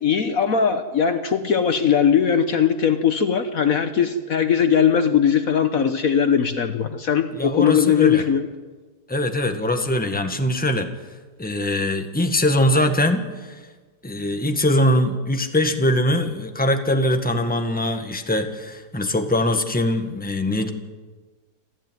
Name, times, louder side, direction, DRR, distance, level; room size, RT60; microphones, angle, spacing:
voice 1, 0.0-8.5, left 7 dB, 60° left, 9 dB, 1.4 m, -19 dB
voice 2, 7.3-8.2 9.1-10.9 11.4-13.6 14.0-20.7, left 1 dB, 5° left, 5 dB, 1.6 m, -22 dB
28.0 x 13.5 x 9.4 m, 1.3 s
omnidirectional pair, 1.8 m